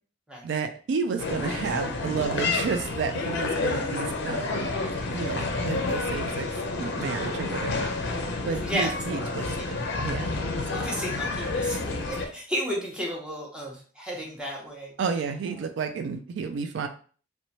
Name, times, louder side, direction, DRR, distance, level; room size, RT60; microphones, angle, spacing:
voice 1, 0.4-4.7 5.1-6.5 6.8-7.9 8.4-9.7 10.0-10.4 10.7-10.9 15.0-16.9, right 5 dB, 65° right, 7 dB, 0.3 m, -31 dB
sound 1, 1.2-12.3, left 3 dB, 60° left, 0.5 m, -29 dB
voice 2, 8.6-8.9 9.6-9.7 10.7-14.9, equal, 5° right, -3 dB, 0.7 m, -33 dB
2.9 x 2.2 x 2.7 m, 0.42 s
head